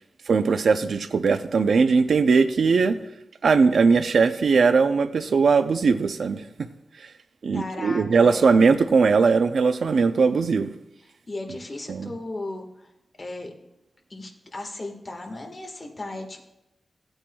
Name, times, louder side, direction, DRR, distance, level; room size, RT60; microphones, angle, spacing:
voice 1, 0.3-3.0 3.4-6.4 7.4-10.7 11.9-12.1, right 5 dB, 80° right, 0.5 m, -20 dB
voice 2, 7.5-8.6 11.3-12.9 13.2-13.5 14.1-16.4, left 2 dB, 35° left, 1.6 m, -36 dB
17.0 x 8.8 x 2.3 m
wide cardioid pair, 115°, 0 cm